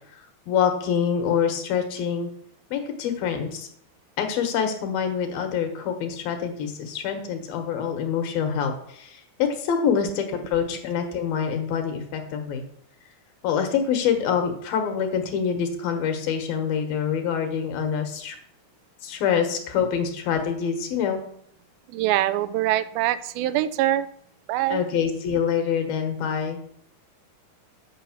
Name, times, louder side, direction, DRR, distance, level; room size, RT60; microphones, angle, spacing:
voice 1, 0.5-2.3 2.7-3.7 4.2-12.6 13.4-18.4 19.0-21.2 24.7-26.6, left 7 dB, 75° left, 6 dB, 3.1 m, -25 dB
voice 2, 21.9-24.1 24.5-24.8, right 13 dB, 85° right, 13 dB, 2.4 m, -24 dB
8.9 x 5.4 x 7.1 m, 0.65 s
omnidirectional pair, 4.2 m